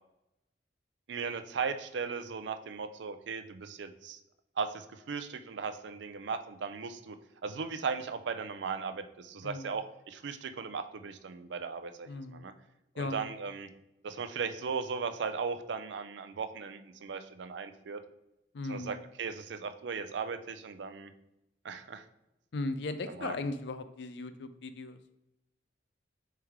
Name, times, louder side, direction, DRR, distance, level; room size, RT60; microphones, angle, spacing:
voice 1, 1.1-4.2 4.6-7.2 7.4-12.5 13.0-13.7 14.0-18.0 18.7-21.1 21.6-22.0 23.2-23.4, right 5 dB, 75° right, 9 dB, 0.4 m, -37 dB
voice 2, 9.4-9.7 12.1-12.5 13.0-13.3 18.5-18.9 22.5-25.0, left 2 dB, 65° left, 11 dB, 0.5 m, -37 dB
7.7 x 3.4 x 3.6 m, 0.89 s
head